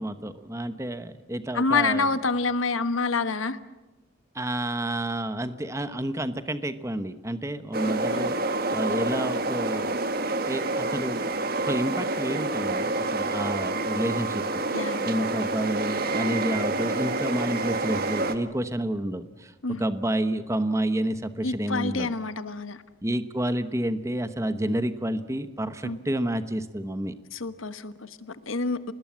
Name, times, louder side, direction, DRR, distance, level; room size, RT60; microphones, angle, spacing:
voice 1, 0.0-2.0 4.3-10.0 10.5-11.2 11.6-19.5 19.8-22.1 23.0-27.1, right 1 dB, 15° right, 11 dB, 1.0 m, -30 dB
voice 2, 1.5-3.6 7.8-8.3 14.7-15.2 19.6-19.9 21.4-22.8 25.8-26.0 27.3-28.9, left 3 dB, 90° left, 12 dB, 1.4 m, -28 dB
sound 1, 7.7-18.3, right 2 dB, 45° right, 1.5 m, -28 dB
26.5 x 20.0 x 7.5 m, 1.1 s
head